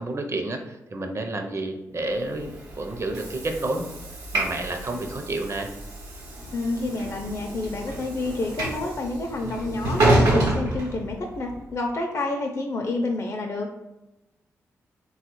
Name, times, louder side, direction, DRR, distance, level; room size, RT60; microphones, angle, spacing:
voice 1, 0.0-3.9 4.3-5.7, right 2 dB, 45° right, 4 dB, 0.6 m, -30 dB
Train / Sliding door, 2.3-11.6, right 1 dB, 85° right, 0.8 m, -28 dB
voice 2, 6.5-13.7, left 2 dB, 45° left, 1 dB, 0.5 m, -29 dB
3.5 x 2.3 x 3.0 m, 0.96 s
supercardioid pair, 45°, 6 cm